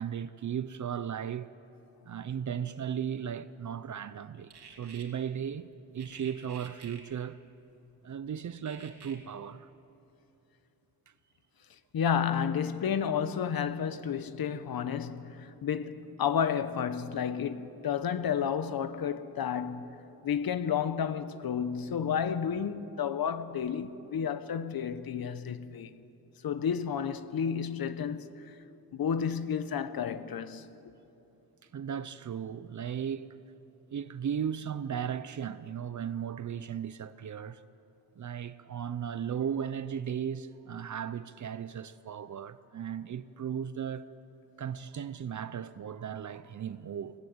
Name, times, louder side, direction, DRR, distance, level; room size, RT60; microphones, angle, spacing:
voice 1, 0.0-1.5 2.1-7.4 8.0-9.7 31.7-33.3 33.9-37.6 38.2-44.0 44.6-47.1, right 8 dB, 50° right, 0.6 m, -36 dB
Adult chewing on pacifier, 4.5-5.0 6.0-7.0 8.7-9.2, right 6 dB, 80° right, 3.1 m, -50 dB
voice 2, 11.9-20.0 20.2-25.9 26.4-28.6 28.9-30.7, left 7 dB, 65° left, 1.1 m, -31 dB
27.0 x 18.0 x 8.0 m
wide cardioid pair, 140°, 39 cm